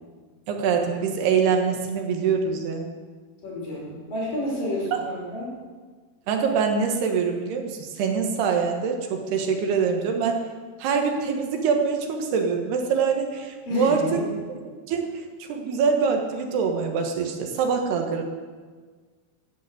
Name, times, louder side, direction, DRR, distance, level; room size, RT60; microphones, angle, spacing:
voice 1, 0.5-2.9 4.9-5.0 6.3-10.5 10.8-14.2 14.9-18.2, right 6 dB, 75° right, 3 dB, 3.4 m, -24 dB
voice 2, 3.4-5.5 13.7-14.2, left 1 dB, 55° left, -4 dB, 6.4 m, -30 dB
13.5 x 10.5 x 7.8 m, 1.5 s
omnidirectional pair, 4.7 m